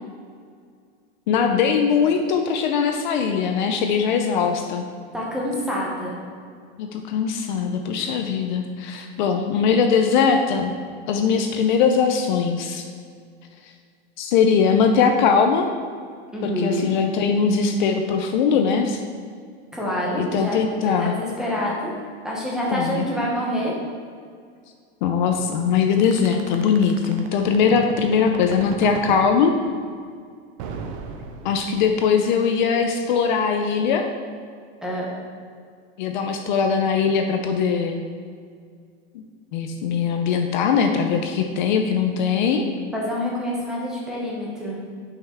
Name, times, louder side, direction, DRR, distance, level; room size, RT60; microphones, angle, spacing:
voice 1, 1.3-4.9 6.8-10.7 11.1-12.8 14.2-15.7 16.4-19.0 20.2-21.1 22.7-23.0 25.0-29.5 31.4-34.0 36.0-38.0 39.1-39.2 39.5-42.7, left 6 dB, 45° left, 5 dB, 0.5 m, -21 dB
voice 2, 5.1-6.2 16.3-16.9 19.7-21.9 22.2-23.7 34.8-35.1 42.9-44.8, equal, ahead, -5 dB, 0.8 m, -27 dB
sound 1, 26.0-29.3 30.6-32.0, right 6 dB, 30° right, 0.5 m, -35 dB
8.9 x 5.6 x 3.5 m, 2.1 s
supercardioid pair, 175°, 33 cm